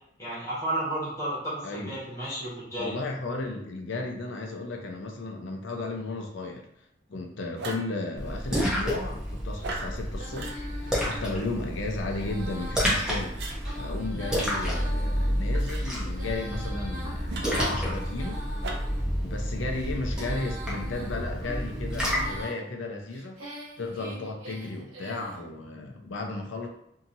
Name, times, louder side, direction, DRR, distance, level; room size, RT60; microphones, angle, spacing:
voice 1, 0.2-2.9, right 1 dB, 15° left, -9 dB, 1.2 m, -32 dB
voice 2, 1.6-2.0 2.8-6.6 7.1-13.3 13.7-18.4 19.2-26.7, left 2 dB, 65° left, 2 dB, 0.5 m, -34 dB
sound 1, 7.6-7.9 9.6-9.9 10.3-10.6 13.3-13.6 15.5-15.8 17.3-18.0 18.6-19.0, right 2 dB, 55° right, 0.4 m, -37 dB
Splash splatter, 8.2-22.4, equal, 5° right, 0.6 m, -30 dB
Female singing, 10.1-19.0 19.6-22.6 23.1-25.4, equal, 85° right, 0.9 m, -43 dB
2.7 x 2.7 x 2.6 m, 0.73 s
head